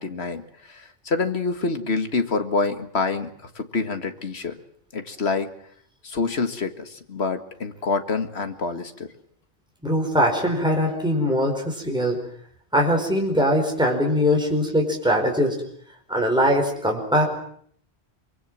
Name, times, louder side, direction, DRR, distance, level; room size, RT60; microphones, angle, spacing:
voice 1, 0.0-3.3 3.6-4.6 4.9-5.5 6.0-9.1, left 4 dB, 75° left, 8 dB, 2.0 m, -26 dB
voice 2, 9.8-12.2 12.7-15.6 16.1-17.2, equal, 5° right, 1 dB, 4.6 m, -21 dB
24.0 x 23.5 x 7.5 m, 0.63 s
omnidirectional pair, 1.1 m